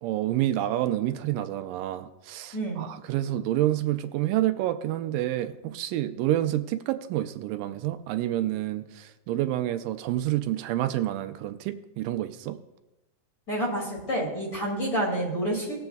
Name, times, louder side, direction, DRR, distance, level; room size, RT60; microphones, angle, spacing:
voice 1, 0.0-12.6, right 13 dB, 80° right, 9 dB, 2.1 m, -28 dB
voice 2, 2.5-2.9 13.5-15.8, right 1 dB, 25° left, -3 dB, 2.6 m, -28 dB
19.5 x 7.8 x 2.3 m, 1.0 s
omnidirectional pair, 4.1 m